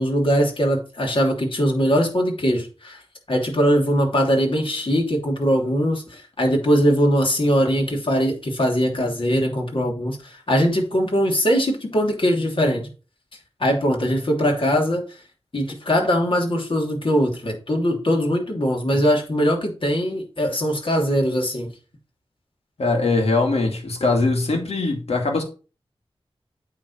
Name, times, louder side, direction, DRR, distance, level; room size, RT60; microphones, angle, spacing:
voice 1, 0.0-3.0 3.3-12.9 13.6-15.0 15.5-21.7, equal, 55° left, 3.1 m, -21 dB
voice 2, 22.8-25.4, left 3 dB, 80° left, 2.5 m, -21 dB
8.7 x 3.9 x 6.4 m
wide cardioid pair, 70°, 10 cm